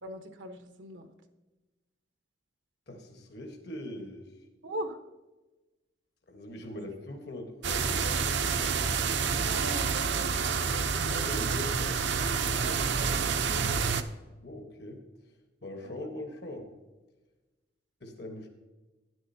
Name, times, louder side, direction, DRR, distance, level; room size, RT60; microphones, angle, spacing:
voice 1, 0.0-1.1 4.6-5.0 9.2-10.5 12.5-13.9 15.8-16.1, right 1 dB, 90° right, 5 dB, 1.1 m, -41 dB
voice 2, 2.9-4.3 6.3-8.4 10.7-12.0 14.4-15.0 15.6-16.7 18.0-18.5, left 1 dB, 60° left, 3 dB, 1.3 m, -41 dB
sound 1, 7.6-14.0, right 5 dB, 75° right, 0.6 m, -28 dB
12.5 x 10.0 x 2.7 m, 1.1 s
head